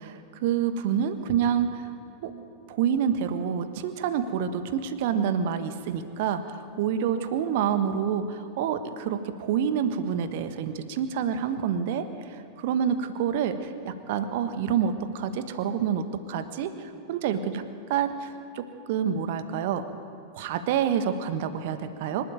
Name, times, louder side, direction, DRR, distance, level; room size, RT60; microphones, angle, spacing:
voice 1, 0.0-1.9 2.2-2.3 2.7-17.6 17.9-19.9 20.3-22.3, right 8 dB, 50° right, 10 dB, 1.3 m, -28 dB
25.0 x 12.5 x 9.0 m, 2.9 s
figure-of-eight pair, 90°, 0 cm